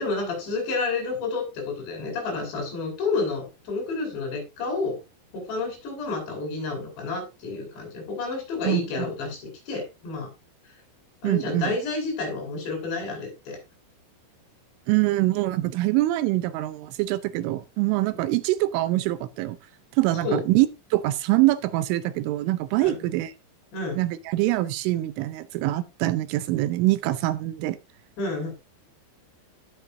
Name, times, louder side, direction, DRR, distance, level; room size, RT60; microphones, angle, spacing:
voice 1, 0.0-5.0 5.3-10.3 11.2-13.6 20.2-20.4 22.8-23.0 23.7-24.0 28.2-28.5, left 3 dB, 60° left, 7.4 m, -30 dB
voice 2, 8.6-9.1 11.2-11.8 14.9-19.6 19.9-23.3 24.0-27.8, right 17 dB, 80° right, 3.1 m, -24 dB
18.0 x 7.3 x 2.6 m
omnidirectional pair, 5.8 m